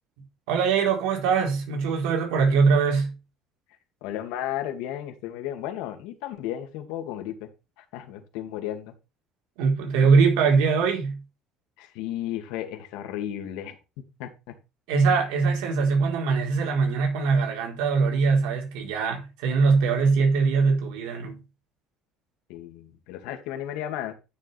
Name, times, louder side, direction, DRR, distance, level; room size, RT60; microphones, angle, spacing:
voice 1, 0.5-3.1 9.6-11.2 14.9-21.4, right 5 dB, 90° right, 4.2 m, -22 dB
voice 2, 4.0-7.5 7.8-8.9 11.8-14.5 22.5-24.1, left 11 dB, 85° left, 2.4 m, -34 dB
12.5 x 7.0 x 3.5 m
cardioid pair, 140°, 0 cm